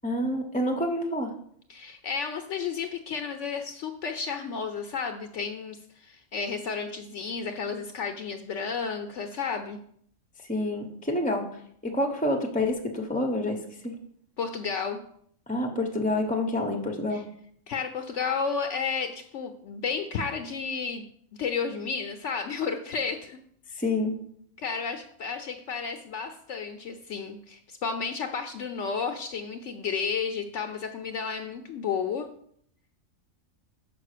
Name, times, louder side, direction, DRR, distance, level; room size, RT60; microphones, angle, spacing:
voice 1, 0.0-1.3 10.4-14.0 15.5-17.2 23.7-24.1, left 1 dB, 10° left, 3 dB, 0.6 m, -28 dB
voice 2, 1.7-9.8 14.4-15.0 17.1-17.2 17.7-21.0 21.3-23.4 23.7-23.8 24.6-32.3, left 5 dB, 65° left, 6 dB, 0.9 m, -32 dB
6.0 x 5.4 x 6.6 m, 0.66 s
omnidirectional pair, 1.4 m